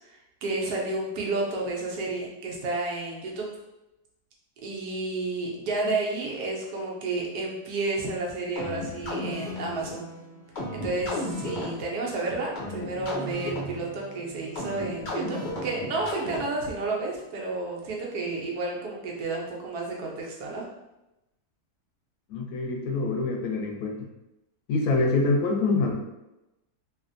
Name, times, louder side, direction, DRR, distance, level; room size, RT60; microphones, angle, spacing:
voice 1, 0.0-3.5 4.6-10.0 10.7-20.6, right 3 dB, 90° right, -2 dB, 1.3 m, -31 dB
sound 1, 8.6-16.8, left 1 dB, 50° left, 0.6 m, -35 dB
voice 2, 22.3-24.1 24.7-25.9, left 3 dB, 85° left, 0 dB, 1.2 m, -25 dB
3.3 x 2.5 x 2.5 m, 0.95 s
omnidirectional pair, 1.6 m